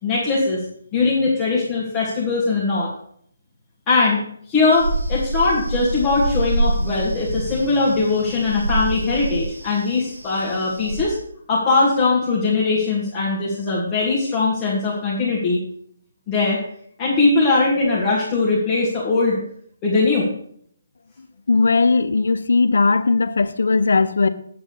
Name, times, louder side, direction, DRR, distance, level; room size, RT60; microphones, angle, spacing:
voice 1, 0.0-0.6 0.9-2.9 3.9-11.2 11.5-15.6 16.3-16.6 17.0-19.4 19.8-20.3, left 3 dB, 20° left, 2.2 m, -20 dB
sound 1, 4.7-11.0, right 1 dB, 90° right, 4.0 m, -26 dB
voice 2, 21.5-24.3, left 4 dB, 75° left, 0.7 m, -18 dB
8.6 x 3.9 x 7.0 m
hypercardioid pair, 155°, 0 cm